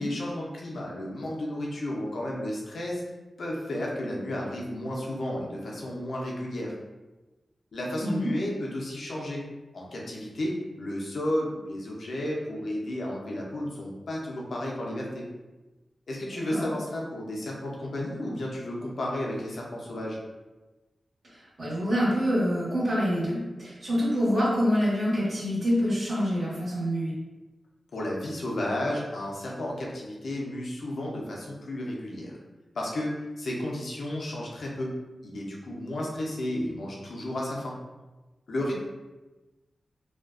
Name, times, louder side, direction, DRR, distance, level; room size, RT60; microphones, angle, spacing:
voice 1, 0.0-3.0 3.4-6.8 7.7-9.4 9.7-15.2 16.1-20.2 27.9-32.4 32.7-34.9 35.2-37.8 38.5-38.7, left 1 dB, 75° left, -3 dB, 0.6 m, -32 dB
voice 2, 8.0-8.3 16.5-16.7 21.3-27.1, equal, 70° right, -9 dB, 1.0 m, -26 dB
2.4 x 2.2 x 2.4 m, 1.1 s
cardioid pair, 60°, 0 cm